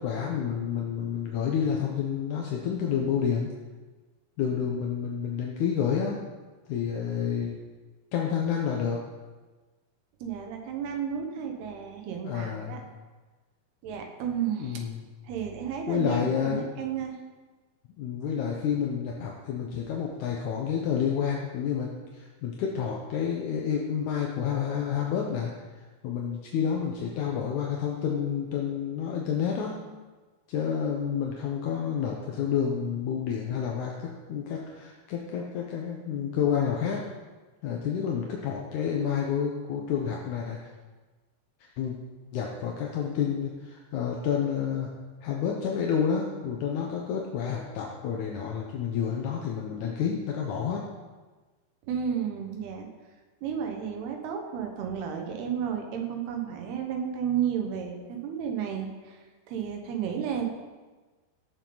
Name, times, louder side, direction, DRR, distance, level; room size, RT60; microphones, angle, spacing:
voice 1, 0.0-3.5 4.4-6.2 6.7-7.6 8.1-9.0 12.2-12.9 14.6-15.0 15.9-16.7 18.0-25.5 26.0-29.8 30.5-37.0 37.6-40.6 41.8-42.0 42.3-44.9 45.2-50.8, left 7 dB, 75° left, -1 dB, 1.8 m, -29 dB
voice 2, 10.2-12.8 13.8-14.9 15.2-17.2 51.9-52.9 53.4-60.5, right 8 dB, 75° right, 3 dB, 3.1 m, -32 dB
17.5 x 7.2 x 3.9 m, 1.3 s
omnidirectional pair, 4.7 m